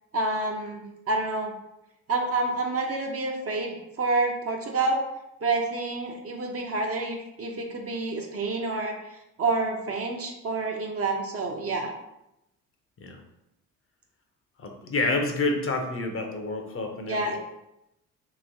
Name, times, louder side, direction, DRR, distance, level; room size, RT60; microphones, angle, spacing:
voice 1, 0.1-1.5 2.1-5.0 5.4-9.0 9.4-11.9 17.1-17.4, right 3 dB, 40° right, 2 dB, 0.7 m, -28 dB
voice 2, 14.6-17.4, left 2 dB, 35° left, 4 dB, 0.6 m, -28 dB
3.1 x 3.0 x 2.6 m, 0.87 s
hypercardioid pair, 50°, 38 cm